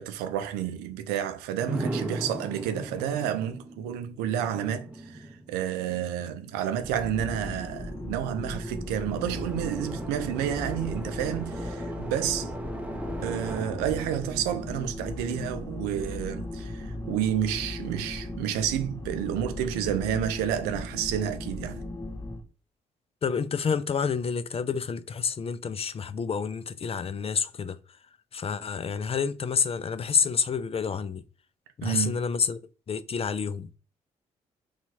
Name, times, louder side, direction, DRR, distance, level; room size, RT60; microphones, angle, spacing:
voice 1, 0.0-12.5 13.2-21.8 31.8-32.2, right 10 dB, 90° right, 0.5 m, -30 dB
sound 1, 1.6-15.4, right 1 dB, 10° right, 0.7 m, -39 dB
sound 2, 6.8-22.4, left 1 dB, 20° left, 0.9 m, -37 dB
voice 2, 23.2-27.8 28.3-31.2 31.8-32.6 32.9-33.8, left 6 dB, 40° left, 0.4 m, -28 dB
2.8 x 2.4 x 4.2 m
supercardioid pair, 50°, 16 cm